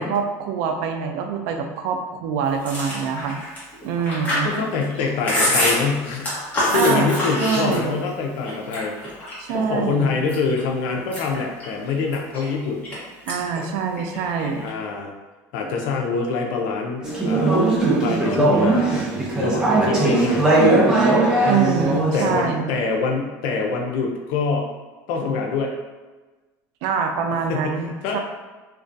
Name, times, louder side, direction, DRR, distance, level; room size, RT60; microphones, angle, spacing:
voice 1, 0.0-3.4 3.8-4.5 6.7-7.1 7.4-7.9 9.4-10.2 13.3-14.7 21.5-22.7 26.8-28.2, right 6 dB, 70° right, 4 dB, 0.3 m, -24 dB
Chewing mastication, 2.6-8.1 8.4-9.5 10.0-10.6 11.0-13.0 13.3-13.6 13.9-14.7, left 1 dB, 20° left, 0.9 m, -25 dB
voice 2, 4.4-6.3 6.7-9.0 9.5-12.9 14.6-15.1 15.5-17.6 18.0-19.1 19.4-20.7 22.1-24.6 25.1-25.7 27.5-28.2, left 4 dB, 70° left, 1 dB, 0.4 m, -25 dB
Conversation / Chatter, 17.0-22.4, right 2 dB, 10° right, 0.6 m, -19 dB
2.3 x 2.2 x 2.5 m, 1.2 s
cardioid pair, 140°, 7 cm